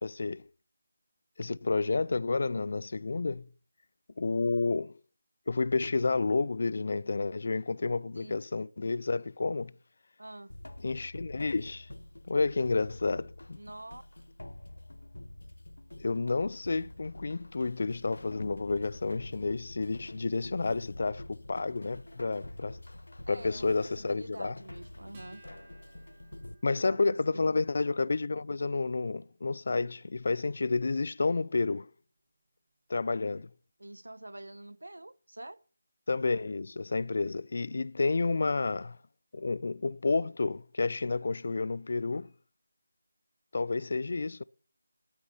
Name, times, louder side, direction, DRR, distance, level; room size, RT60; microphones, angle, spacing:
voice 1, 0.0-0.4 1.4-3.5 4.2-4.9 5.5-9.7 10.8-11.9 12.3-13.6 16.0-22.8 23.3-24.5 26.6-31.9 32.9-33.5 36.1-39.0 39.3-42.3 43.5-44.4, left 3 dB, 50° left, 0.4 m, -30 dB
voice 2, 10.2-10.6 13.5-14.0 23.3-25.4 26.8-27.6 33.8-35.6, right 1 dB, 75° right, 0.7 m, -46 dB
sound 1, 10.5-26.5, left 1 dB, 75° left, 1.2 m, -47 dB
Acoustic guitar, 25.1-32.0, right 3 dB, 30° right, 3.9 m, -62 dB
12.0 x 8.7 x 5.8 m
figure-of-eight pair, 160°, 0 cm